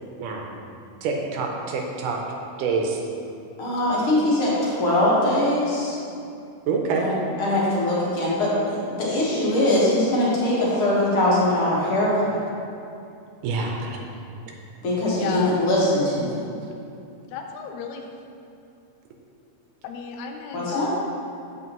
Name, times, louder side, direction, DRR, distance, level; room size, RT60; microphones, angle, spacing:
voice 1, 1.0-2.2 2.6-3.0 6.7-7.1 13.4-13.9, right 4 dB, 80° right, 1 dB, 2.2 m, -26 dB
voice 2, 3.6-6.0 7.0-12.4 14.8-16.4 20.5-20.9, left 1 dB, 50° left, -6 dB, 1.8 m, -22 dB
voice 3, 15.2-15.5 17.3-18.1 19.8-21.0, left 6 dB, 80° left, 3 dB, 1.7 m, -33 dB
8.1 x 7.1 x 3.0 m, 2.6 s
omnidirectional pair, 3.8 m